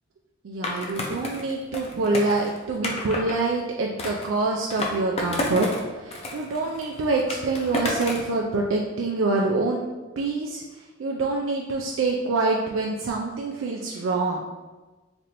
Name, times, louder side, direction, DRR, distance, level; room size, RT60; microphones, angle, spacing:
voice 1, 0.4-5.7 5.9-9.8 10.2-10.6 11.0-14.5, right 3 dB, 85° right, 0 dB, 0.4 m, -26 dB
Skateboard, 0.6-3.4 4.0-5.8 6.1-8.3, left 1 dB, 30° left, 0.5 m, -31 dB
3.3 x 2.6 x 4.2 m, 1.2 s
head